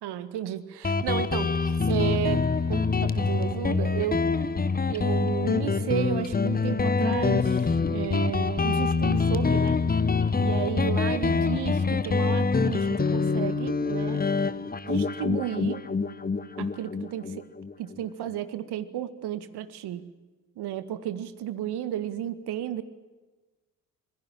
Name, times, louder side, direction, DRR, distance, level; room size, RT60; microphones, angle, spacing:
voice 1, 0.0-4.2 4.9-9.8 10.4-14.2 14.8-15.8 16.6-17.5 17.8-20.0 20.6-22.8, right 11 dB, 55° right, 12 dB, 2.0 m, -33 dB
Guitar, 0.8-18.0, left 4 dB, 20° left, 1.3 m, -25 dB
27.0 x 21.5 x 7.5 m, 1.2 s
figure-of-eight pair, 50°, 47 cm